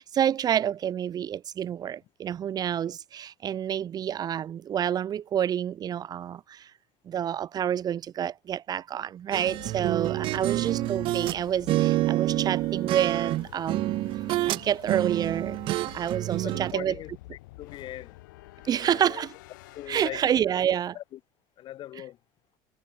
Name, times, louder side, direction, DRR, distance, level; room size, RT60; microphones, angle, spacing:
voice 1, 0.0-6.7 7.0-14.0 14.5-17.0 18.6-19.3 19.9-21.0, right 9 dB, 40° right, 1.7 m, -28 dB
sound 1, 9.3-11.4 11.7-14.6 14.9-16.7, right 16 dB, 60° right, 1.6 m, -27 dB
sound 2, 9.5-20.9, left 20 dB, 85° left, 7.2 m, -48 dB
voice 2, 16.4-17.1 17.6-18.2 18.8-19.3 19.7-20.2 20.9-21.0 21.6-22.2, left 13 dB, 50° left, 4.0 m, -40 dB
supercardioid pair, 100°, 10 cm